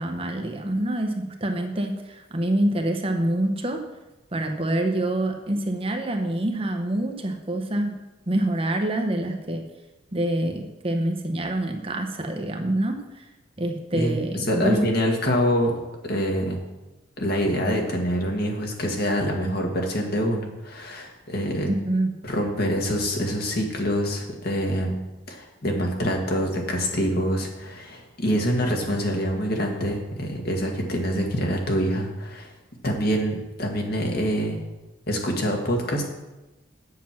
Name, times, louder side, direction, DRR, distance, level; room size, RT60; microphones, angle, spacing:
voice 1, 0.0-3.8 4.3-7.9 8.3-9.6 10.1-13.3 13.6-14.8 21.7-22.1, right 1 dB, 30° right, 4 dB, 0.9 m, -26 dB
voice 2, 13.9-15.7 16.0-16.6 17.2-21.7 22.2-25.0 25.3-32.5 32.8-34.6 35.1-36.0, equal, 50° left, 1 dB, 1.8 m, -25 dB
9.0 x 7.6 x 5.9 m, 1.0 s
head